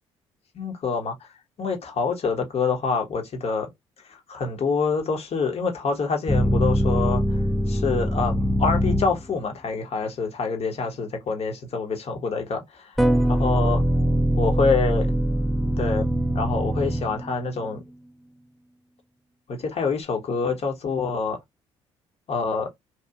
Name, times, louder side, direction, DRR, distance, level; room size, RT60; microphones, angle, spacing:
voice 1, 0.5-1.3 1.6-3.7 4.1-13.8 14.4-15.1 15.8-16.1 16.3-17.8 19.5-21.4 22.3-22.7, left 4 dB, 45° left, 0.9 m, -26 dB
sound 1, 6.3-9.4 13.0-17.6, equal, ahead, 0.4 m, -23 dB
2.7 x 2.4 x 2.3 m
hypercardioid pair, 45°, 14 cm